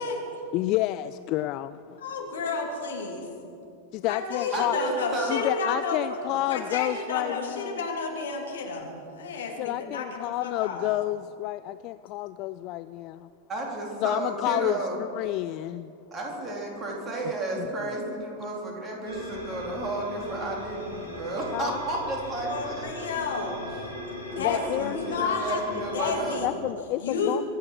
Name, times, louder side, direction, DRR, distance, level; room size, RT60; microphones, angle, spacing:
voice 1, 0.0-0.4 2.0-3.3 4.1-10.9 22.5-23.8 24.3-26.6 27.0-27.4, left 4 dB, 65° left, 1 dB, 2.6 m, -31 dB
voice 2, 0.5-2.0 3.9-4.8 5.3-7.8 9.6-13.3 14.0-15.9 17.6-17.7 21.5-21.8 24.4-25.0 26.4-27.4, left 16 dB, 40° left, 14 dB, 0.3 m, -30 dB
voice 3, 4.5-5.5 13.5-15.0 16.1-22.9 24.3-26.5, right 2 dB, 20° right, -1 dB, 3.7 m, -32 dB
sound 1, 19.1-26.4, left 2 dB, 90° left, 3.7 m, -38 dB
23.5 x 8.5 x 6.2 m, 2.5 s
figure-of-eight pair, 90°, 0 cm